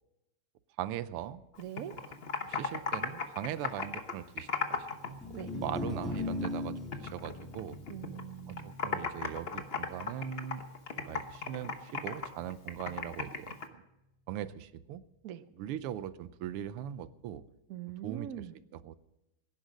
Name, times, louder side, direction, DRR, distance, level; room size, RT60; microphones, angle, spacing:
voice 1, 0.8-1.4 1.9-2.0 2.4-7.8 8.5-10.6 11.1-13.8 14.3-15.0 15.5-17.4 18.0-18.5 18.7-19.0, right 11 dB, 85° right, 15 dB, 1.6 m, -40 dB
Computer keyboard, 1.5-5.1 5.4-6.6 6.9-8.2 8.5-13.7, left 5 dB, 40° left, 0.9 m, -36 dB
voice 2, 1.6-1.9 5.3-5.5 7.9-8.8 15.2-15.4 17.7-18.5, right 11 dB, 65° right, 12 dB, 0.8 m, -42 dB
sound 1, 5.1-11.5, left 2 dB, ahead, 1.4 m, -40 dB
16.5 x 10.5 x 6.3 m, 0.91 s
omnidirectional pair, 2.4 m